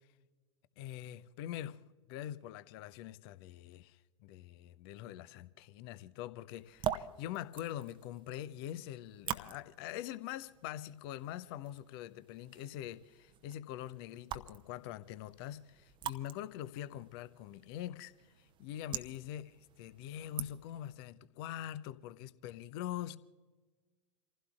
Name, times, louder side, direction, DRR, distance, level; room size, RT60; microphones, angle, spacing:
voice 1, 0.8-1.8 2.1-23.2, left 12 dB, 45° left, 0.7 m, -44 dB
sound 1, 6.5-20.9, right 10 dB, 30° right, 0.8 m, -46 dB
28.5 x 16.0 x 2.4 m
figure-of-eight pair, 90°, 17 cm